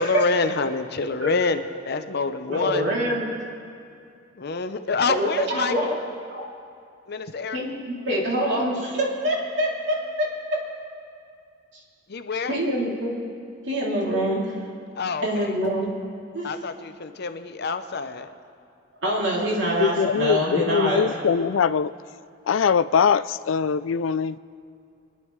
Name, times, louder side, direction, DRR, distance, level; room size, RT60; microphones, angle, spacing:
voice 1, 0.0-2.8 4.4-6.0 7.1-7.6 12.1-12.6 15.0-15.5 16.4-18.3, left 4 dB, 55° left, 9 dB, 0.7 m, -27 dB
voice 2, 2.5-3.2 5.1-5.9 6.3-6.4 7.5-10.6 10.8-11.0 12.5-13.1 13.6-14.6 15.2-15.9 16.3-16.5 19.0-21.1, right 1 dB, 65° right, -4 dB, 3.0 m, -25 dB
voice 3, 19.6-21.9 22.5-24.4, left 6 dB, 85° left, 15 dB, 0.4 m, -22 dB
25.5 x 10.5 x 3.2 m, 2.4 s
head